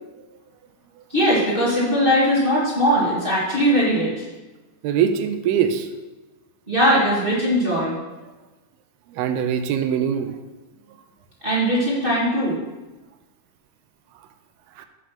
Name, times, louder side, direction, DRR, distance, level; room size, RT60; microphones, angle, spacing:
voice 1, 1.1-4.2 6.7-7.9 11.4-12.5, equal, 50° right, -7 dB, 0.6 m, -20 dB
voice 2, 4.8-5.9 9.2-10.4 14.8-14.9, right 8 dB, 80° right, 8 dB, 2.4 m, -22 dB
8.1 x 6.5 x 5.9 m, 1.1 s
omnidirectional pair, 4.8 m